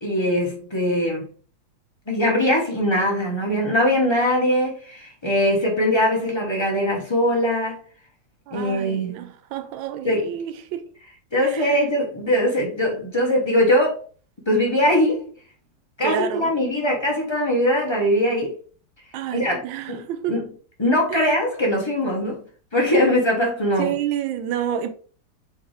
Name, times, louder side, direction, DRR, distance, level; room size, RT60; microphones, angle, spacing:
voice 1, 0.0-1.3 2.1-7.8 8.5-9.3 10.0-10.3 11.3-14.0 14.5-15.3 16.0-18.5 19.3-19.6 19.9-20.0 20.3-20.4 20.8-22.4 22.7-23.9, left 1 dB, 20° left, 0.7 m, -21 dB
voice 2, 8.5-10.9 11.4-11.8 16.0-16.6 19.1-20.4 21.1-21.3 23.8-24.9, right 10 dB, 85° right, 1.4 m, -29 dB
4.7 x 3.4 x 3.2 m
omnidirectional pair, 2.0 m